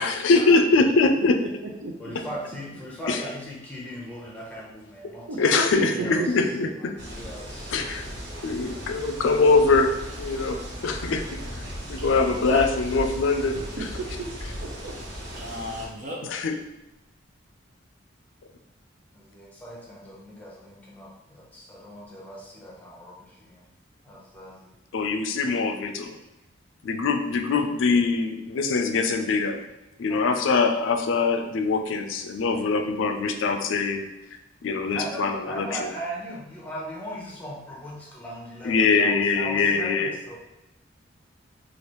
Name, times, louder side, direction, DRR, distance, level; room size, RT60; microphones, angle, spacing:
voice 1, 0.0-1.4 3.1-3.2 5.4-6.7 7.7-8.0 8.4-9.9 10.2-11.3 11.9-13.6 16.2-16.6 24.9-26.2 26.8-29.6 30.0-34.1 34.6-35.7 38.6-40.1, left 4 dB, 85° left, 6 dB, 0.4 m, -23 dB
voice 2, 1.4-2.1 5.3-5.4 5.8-6.7 13.5-14.3 14.6-14.9, right 3 dB, 85° right, 1 dB, 0.6 m, -34 dB
voice 3, 2.0-6.3 6.7-7.8 19.1-23.7 24.0-24.7 30.1-30.3 32.6-32.7 34.9-40.4, equal, 10° left, -4 dB, 0.7 m, -39 dB
sound 1, 7.0-15.9, equal, 65° right, 1.0 m, -37 dB
Male speech man speaking, 12.0-12.9 15.4-16.2, equal, 45° right, 0.6 m, -35 dB
3.2 x 2.5 x 3.0 m, 1.0 s
head